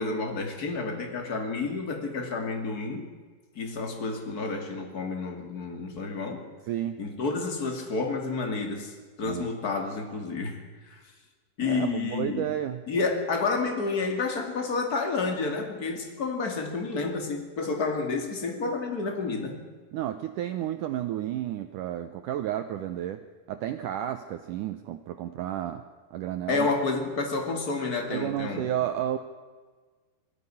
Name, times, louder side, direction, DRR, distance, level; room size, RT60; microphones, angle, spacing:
voice 1, 0.0-3.1 3.6-6.5 7.0-11.0 11.6-12.5 12.9-19.6 26.5-28.7, left 4 dB, 30° left, 4 dB, 2.3 m, -30 dB
voice 2, 6.7-7.0 9.2-9.5 11.6-12.8 19.9-23.2 23.5-25.8 26.1-26.7 28.1-29.2, right 11 dB, 80° right, 9 dB, 1.8 m, -31 dB
20.0 x 15.0 x 9.9 m, 1.4 s
omnidirectional pair, 4.7 m